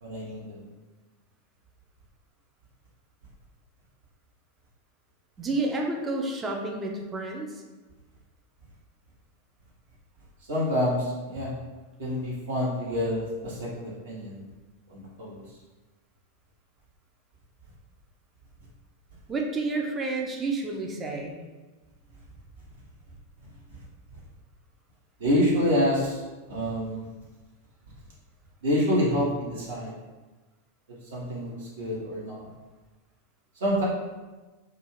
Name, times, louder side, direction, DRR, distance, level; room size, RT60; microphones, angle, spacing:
voice 1, 0.0-0.6 10.5-11.5 12.0-14.4 14.9-15.4 23.7-23.8 24.1-24.2 25.2-26.2 26.5-27.1 28.6-30.0 31.1-32.5 33.6-33.8, equal, 65° right, -6 dB, 0.8 m, -27 dB
voice 2, 5.4-7.6 19.3-21.4, right 3 dB, 20° right, 0 dB, 0.4 m, -30 dB
2.3 x 2.3 x 3.1 m, 1.2 s
figure-of-eight pair, 90°, 0 cm